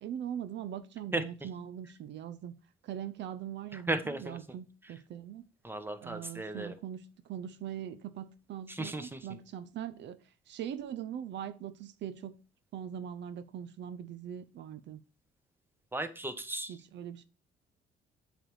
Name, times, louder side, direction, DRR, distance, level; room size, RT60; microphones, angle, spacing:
voice 1, 0.0-2.5 2.8-5.5 6.0-12.4 12.7-15.0 16.7-17.3, right 9 dB, 65° right, 0.6 m, -41 dB
voice 2, 1.1-1.5 3.7-4.4 4.8-4.9 5.6-6.7 8.7-9.3 15.9-16.7, right 2 dB, 10° right, 1.1 m, -36 dB
7.6 x 3.5 x 6.3 m
cardioid pair, 80°, 20 cm